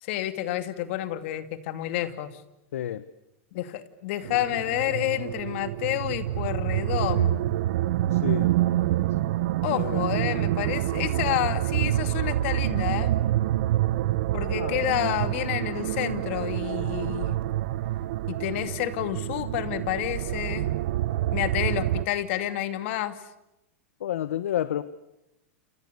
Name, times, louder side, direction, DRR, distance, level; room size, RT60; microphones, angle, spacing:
voice 1, 0.0-2.4 3.5-7.4 9.6-13.1 14.3-17.4 18.3-20.7 21.3-23.2, left 14 dB, 60° left, 11 dB, 2.6 m, -29 dB
voice 2, 2.7-3.0 8.1-8.5 9.7-10.0 14.6-14.8 24.0-24.8, left 11 dB, 80° left, 15 dB, 1.1 m, -30 dB
sound 1, 4.2-22.0, right 14 dB, 65° right, 1.1 m, -27 dB
29.5 x 29.0 x 6.8 m, 0.91 s
hypercardioid pair, 120°, 7 cm